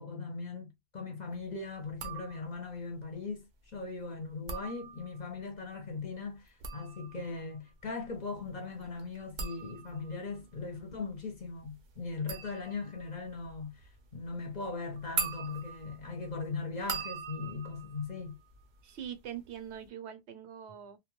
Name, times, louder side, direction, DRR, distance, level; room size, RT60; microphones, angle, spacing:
voice 1, 0.0-18.4, left 4 dB, 45° left, 0.7 m, -39 dB
sound 1, 1.9-2.7 4.3-5.4 6.4-19.1 19.4-19.9, right 5 dB, 55° right, 0.6 m, -42 dB
voice 2, 18.8-21.0, right 9 dB, 80° right, 0.9 m, -43 dB
2.2 x 2.2 x 2.8 m
omnidirectional pair, 1.1 m